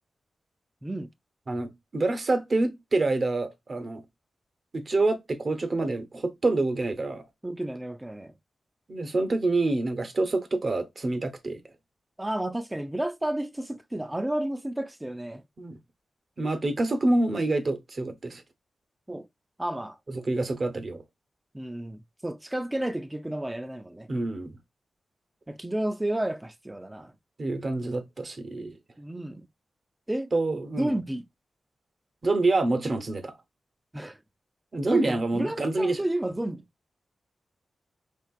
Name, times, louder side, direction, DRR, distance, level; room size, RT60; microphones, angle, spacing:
voice 1, 1.5-4.0 4.7-7.3 8.9-11.6 15.6-15.8 16.4-18.4 20.1-21.0 24.1-24.5 27.4-28.8 30.3-30.9 32.2-33.3 34.7-36.0, right 2 dB, 50° right, 0.8 m, -27 dB
voice 2, 7.4-8.4 12.2-15.4 19.1-19.3 19.6-20.0 21.5-24.1 25.5-27.1 29.0-29.5 30.1-30.3 30.8-31.2 33.9-34.2 34.9-36.6, right 1 dB, 15° right, 0.4 m, -31 dB
4.4 x 2.9 x 2.3 m
cardioid pair, 55°, 0 cm